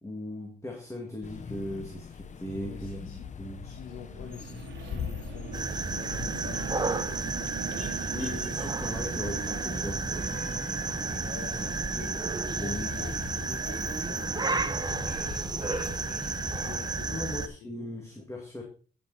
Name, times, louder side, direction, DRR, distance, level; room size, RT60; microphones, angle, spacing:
voice 1, 0.0-3.7 8.1-10.1 11.6-12.2 12.6-13.0 17.0-18.6, left 1 dB, 15° left, 0 dB, 2.4 m, -38 dB
sound 1, 1.2-17.0, left 6 dB, 40° left, 0.7 m, -42 dB
sound 2, 2.5-12.3, right 9 dB, 75° right, 1.3 m, -44 dB
voice 2, 2.6-3.3 3.6-8.5 11.1-11.6 12.1-12.2 12.6-15.4 15.8-17.3 17.6-17.9, left 7 dB, 80° left, 3 dB, 1.5 m, -47 dB
sound 3, 5.5-17.5, right 4 dB, 20° right, 0.8 m, -32 dB
9.4 x 7.3 x 4.2 m, 0.38 s
cardioid pair, 90°, 20 cm